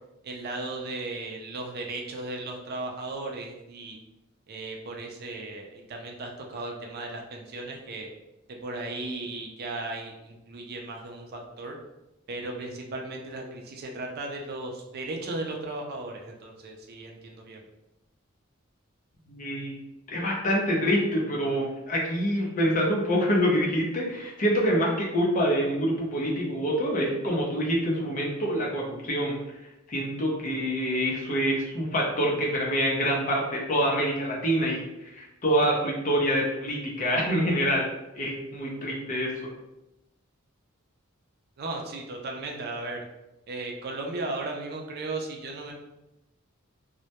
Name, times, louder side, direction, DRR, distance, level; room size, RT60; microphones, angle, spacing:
voice 1, 0.2-4.0 4.5-8.1 8.5-11.8 12.3-17.6 41.6-43.1 43.5-45.7, right 2 dB, 50° right, 1 dB, 0.4 m, -36 dB
voice 2, 19.3-19.8 20.1-29.4 29.9-37.9 38.1-39.5, equal, 40° left, -2 dB, 0.5 m, -26 dB
2.1 x 2.1 x 2.8 m, 0.93 s
head